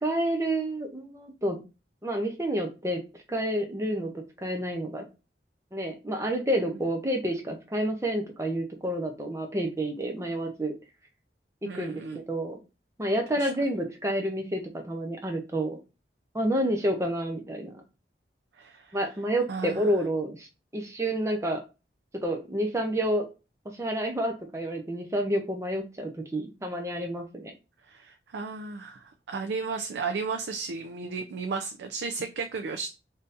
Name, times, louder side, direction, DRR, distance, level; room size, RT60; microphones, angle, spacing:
voice 1, 0.0-1.6 2.0-3.0 3.3-4.1 4.4-5.0 5.7-10.7 11.6-12.0 12.3-12.6 13.0-15.8 16.3-17.8 18.9-20.5 20.7-21.6 22.2-23.3 23.7-27.5, right 1 dB, 15° right, 3 dB, 0.5 m, -29 dB
voice 2, 11.6-12.2 13.4-13.5 18.6-19.0 19.5-19.9 27.9-32.9, right 4 dB, 80° right, 5 dB, 0.4 m, -34 dB
3.6 x 2.7 x 2.5 m, 0.29 s
head